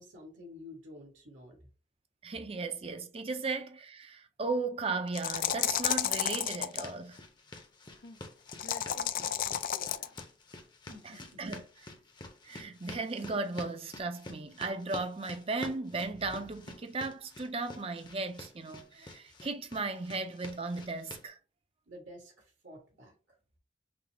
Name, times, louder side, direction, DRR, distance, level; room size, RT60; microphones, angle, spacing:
voice 1, 0.0-1.6 10.9-11.4 21.9-22.3 22.6-23.1, left 1 dB, 80° right, 1.4 m, -50 dB
voice 2, 2.2-7.2 11.0-11.9 12.4-21.4, right 3 dB, 30° right, 0.5 m, -36 dB
sound 1, 5.1-6.9 8.5-10.2, left 10 dB, 50° left, 0.3 m, -31 dB
sound 2, 6.7-21.3, left 2 dB, 25° left, 0.7 m, -49 dB
voice 3, 7.9-10.2, left 2 dB, 65° left, 0.9 m, -53 dB
5.9 x 2.0 x 3.3 m
head